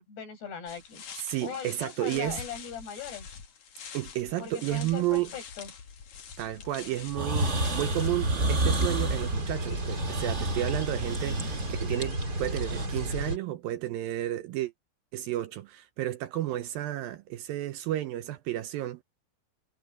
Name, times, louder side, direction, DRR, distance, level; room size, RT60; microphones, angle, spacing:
voice 1, 0.0-1.0 1.4-3.3 4.4-5.7, left 7 dB, 80° left, 9.9 m, -39 dB
sound 1, 0.7-8.1, left 7 dB, 50° left, 3.1 m, -46 dB
voice 2, 1.2-2.4 3.9-5.3 6.4-14.7 15.1-19.0, right 14 dB, 75° right, 2.3 m, -32 dB
sound 2, 7.1-12.9, right 2 dB, 40° right, 1.0 m, -31 dB
sound 3, 7.4-13.4, right 1 dB, 25° right, 5.1 m, -32 dB
omnidirectional pair, 4.7 m